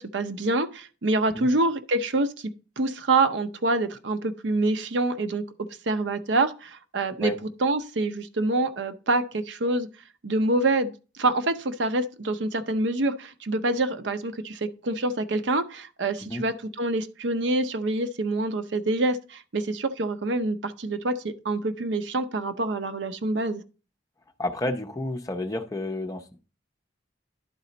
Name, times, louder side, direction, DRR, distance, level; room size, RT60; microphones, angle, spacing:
voice 1, 0.0-2.5 2.8-5.4 5.9-7.3 7.6-9.9 10.2-10.9 11.2-23.6, right 2 dB, 70° right, 0.6 m, -26 dB
voice 2, 24.4-26.4, left 1 dB, 20° left, 0.6 m, -30 dB
11.0 x 4.2 x 3.9 m
head